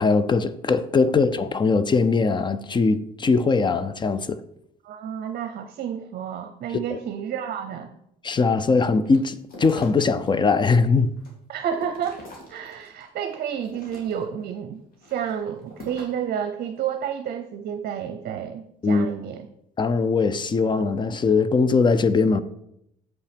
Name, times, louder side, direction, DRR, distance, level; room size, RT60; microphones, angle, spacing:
voice 1, 0.0-4.4 6.9-7.0 8.2-11.1 18.8-19.1 19.8-22.4, left 4 dB, 25° left, 0.5 m, -21 dB
voice 2, 4.8-7.9 11.5-12.2 12.5-14.8 15.1-19.5, right 8 dB, 60° right, 0.7 m, -30 dB
sound 1, 9.0-10.3 10.7-13.0 13.5-14.4 14.9-16.3, left 1 dB, 60° left, 2.7 m, -43 dB
7.7 x 5.6 x 5.1 m
cardioid pair, 110°, 17 cm